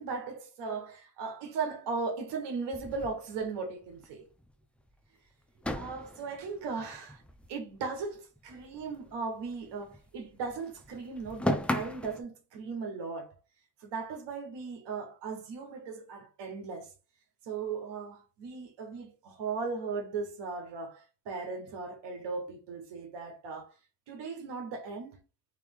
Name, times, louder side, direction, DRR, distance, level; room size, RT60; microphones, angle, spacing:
voice 1, 0.0-4.3 5.7-7.2 7.5-13.3 13.8-16.9 17.4-23.7 24.1-25.2, right 4 dB, 80° right, 1.4 m, -37 dB
sound 1, 2.7-4.1 4.4-4.5 4.8-4.9 5.6-8.1 8.4-10.2 10.4-12.2, left 1 dB, 5° left, 0.3 m, -37 dB
3.4 x 3.1 x 3.6 m
cardioid pair, 125°, 41 cm